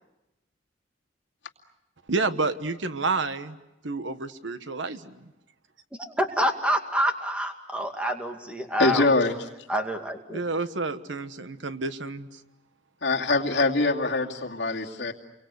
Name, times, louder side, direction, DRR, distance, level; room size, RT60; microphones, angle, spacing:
voice 1, 2.1-3.6 3.8-5.3 10.3-12.4, right 3 dB, 85° right, 11 dB, 1.3 m, -29 dB
voice 2, 6.0-9.1 9.7-10.4, equal, 5° right, 4 dB, 2.2 m, -27 dB
voice 3, 8.8-9.3 13.0-15.1, left 2 dB, 65° left, 0 dB, 2.5 m, -23 dB
29.5 x 23.5 x 8.2 m, 0.93 s
head